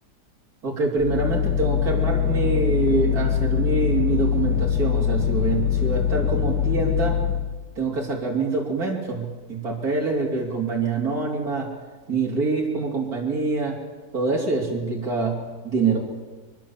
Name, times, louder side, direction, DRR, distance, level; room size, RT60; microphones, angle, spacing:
voice 1, 0.6-7.2 7.8-11.7 12.1-13.8 14.1-16.0, right 3 dB, 60° right, -2 dB, 3.8 m, -25 dB
sound 1, 1.0-7.5, left 9 dB, 90° left, 2.7 m, -23 dB
24.0 x 24.0 x 7.3 m, 1.3 s
omnidirectional pair, 1.8 m